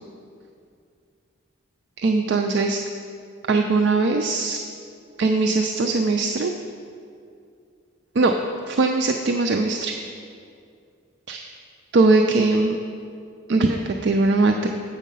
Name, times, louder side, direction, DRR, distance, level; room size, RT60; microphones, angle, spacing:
voice 1, 2.0-2.8 3.5-4.6 5.2-6.5 8.2-8.3 8.7-9.9 11.3-11.5 11.9-12.8 13.5-14.7, right 3 dB, 55° right, 4 dB, 0.4 m, -20 dB
7.4 x 6.4 x 5.4 m, 2.4 s
head